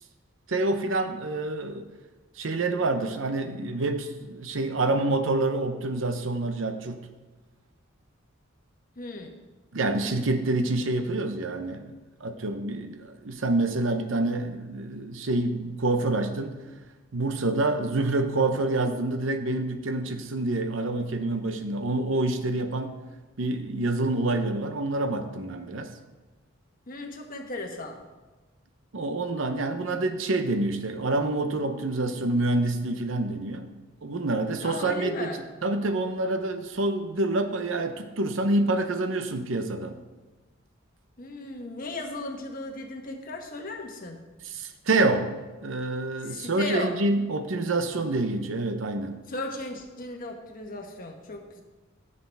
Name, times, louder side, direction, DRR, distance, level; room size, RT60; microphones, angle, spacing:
voice 1, 0.5-1.9 2.4-7.1 9.7-11.9 12.2-16.6 17.1-23.0 23.4-25.9 28.9-33.7 34.0-35.3 35.6-40.0 44.4-45.3 45.6-49.2, right 2 dB, 75° right, 8 dB, 0.8 m, -27 dB
voice 2, 9.0-9.3 26.9-28.0 34.6-35.4 41.2-44.2 46.2-47.0 49.3-51.6, left 2 dB, 45° left, 3 dB, 1.2 m, -36 dB
15.0 x 6.7 x 3.5 m, 1.2 s
head